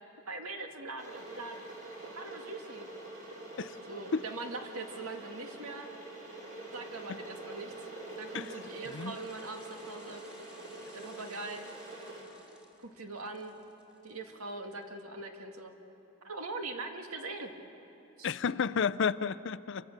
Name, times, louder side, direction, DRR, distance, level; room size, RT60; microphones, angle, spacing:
voice 1, 0.3-1.8 2.1-2.9 3.9-5.9 6.7-7.9 8.2-10.2 10.9-11.7 12.8-13.5 14.0-15.7 16.2-17.5 18.2-18.4, right 3 dB, 85° right, 4 dB, 2.0 m, -42 dB
Water / Boiling, 1.0-12.2, right 2 dB, 40° right, 4.6 m, -45 dB
sound 1, 7.6-14.8 15.2-15.3, left 1 dB, 5° right, 2.1 m, -61 dB
voice 2, 18.2-19.9, left 6 dB, 55° left, 17 dB, 0.5 m, -31 dB
28.5 x 24.0 x 6.7 m, 3.0 s
head